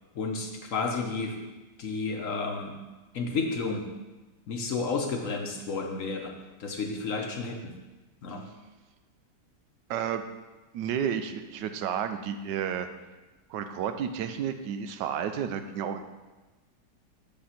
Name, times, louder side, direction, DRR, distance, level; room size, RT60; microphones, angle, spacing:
voice 1, 0.1-1.4 1.8-2.8 3.1-3.9 4.5-6.3 6.6-7.8 8.2-8.4, left 4 dB, 55° left, 2 dB, 1.0 m, -31 dB
voice 2, 9.9-10.2 10.7-12.9 13.5-16.0, right 8 dB, 85° right, 9 dB, 1.3 m, -31 dB
6.8 x 5.4 x 5.7 m, 1.2 s
omnidirectional pair, 1.9 m